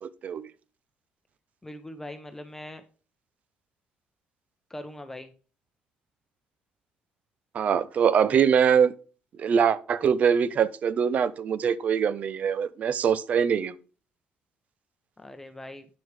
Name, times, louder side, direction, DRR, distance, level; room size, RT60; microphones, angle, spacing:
voice 1, 0.0-0.5 7.5-8.9 9.4-13.7, right 7 dB, 50° right, 0.7 m, -23 dB
voice 2, 1.6-2.8 4.7-5.3 15.2-15.9, left 1 dB, 10° left, 0.9 m, -41 dB
9.1 x 6.2 x 3.4 m
cardioid pair, 110°, 3 cm